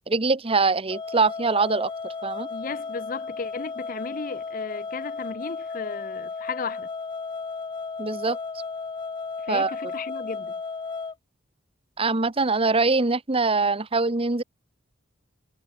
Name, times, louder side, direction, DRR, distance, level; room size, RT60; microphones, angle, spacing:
voice 1, 0.1-1.9 2.2-2.5 8.0-8.4 9.5-9.8 12.0-14.4, right 3 dB, 30° right, 1.1 m, -23 dB
sound 1, 0.9-11.1, left 4 dB, 25° left, 0.4 m, -34 dB
voice 2, 2.5-6.9 9.4-10.5, left 4 dB, 45° left, 0.7 m, -35 dB
head